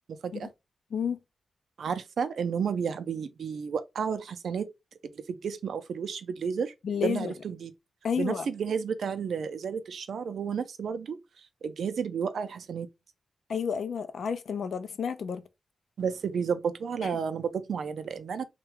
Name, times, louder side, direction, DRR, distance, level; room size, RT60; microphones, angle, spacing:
voice 1, 1.8-4.7 5.1-6.7 7.0-7.7 8.2-11.2 11.6-12.9 16.0-18.4, right 6 dB, 75° right, 0.4 m, -32 dB
voice 2, 6.8-7.3 8.0-8.5 13.5-15.4 17.0-17.1, left 7 dB, 75° left, 0.4 m, -31 dB
3.2 x 2.2 x 3.2 m
wide cardioid pair, 180°, 0 cm